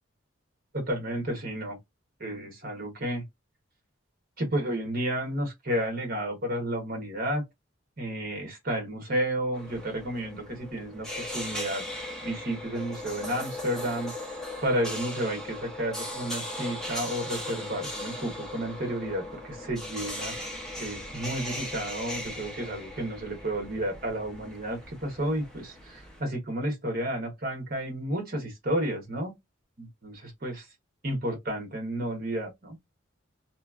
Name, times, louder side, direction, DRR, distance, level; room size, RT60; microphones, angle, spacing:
voice 1, 0.7-1.8 2.2-3.2 4.4-7.4 8.0-11.1 11.3-11.9 12.2-20.3 20.8-29.3 29.8-30.7 31.0-32.8, right 1 dB, 45° right, 1.1 m, -32 dB
sound 1, 9.5-26.2, left 1 dB, 5° left, 0.7 m, -38 dB
3.1 x 2.4 x 2.3 m
head